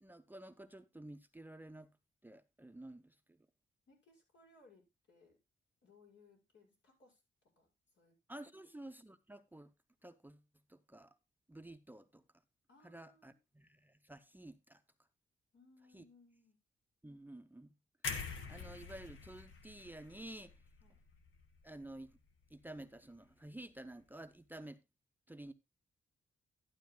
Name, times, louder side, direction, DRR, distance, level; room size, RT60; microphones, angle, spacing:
voice 1, 0.0-1.9 2.2-3.1 8.3-9.7 10.0-10.4 10.7-11.2 11.5-12.2 12.8-14.8 15.9-16.0 17.0-17.7 18.2-20.5 21.6-22.1 22.5-24.8 25.3-25.5, right 1 dB, 10° right, 0.7 m, -51 dB
voice 2, 3.9-5.4 5.8-7.2 7.6-7.7 7.9-8.2 12.7-13.4 15.5-16.6 20.8-21.0, left 3 dB, 75° left, 6.1 m, -65 dB
sound 1, 18.0-22.1 22.4-22.6, left 5 dB, 90° left, 1.5 m, -46 dB
12.0 x 12.0 x 2.2 m
cardioid pair, 90°, 19 cm